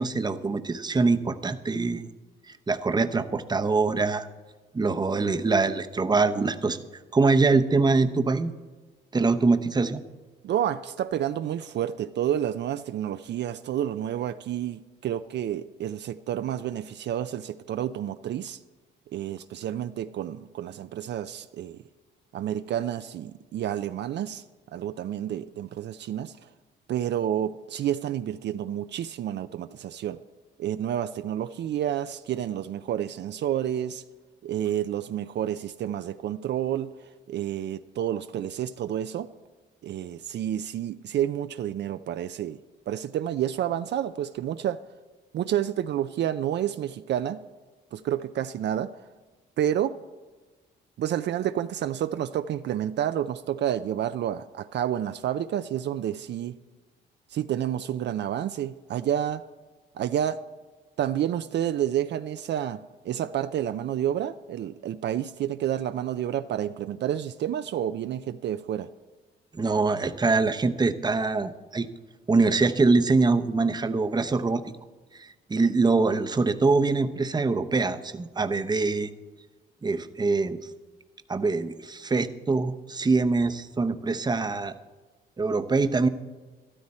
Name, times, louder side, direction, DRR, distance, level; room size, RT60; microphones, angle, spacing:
voice 1, 0.0-2.1 2.5-4.3 4.7-6.8 7.1-8.5 9.1-10.0 69.5-71.9 72.3-74.6 75.1-79.1 79.8-80.6 81.3-84.7 85.4-86.1, right 3 dB, 20° right, 0.8 m, -24 dB
voice 2, 10.4-18.6 19.1-21.8 22.3-24.4 24.7-26.5 26.9-30.2 30.6-34.0 34.4-39.3 39.8-42.6 42.9-44.8 45.3-47.4 47.9-49.1 49.6-50.0 51.0-56.6 57.3-59.4 59.9-60.4 61.0-68.9, right 10 dB, 60° right, 0.5 m, -29 dB
13.0 x 12.5 x 4.3 m
cardioid pair, 90°, 20 cm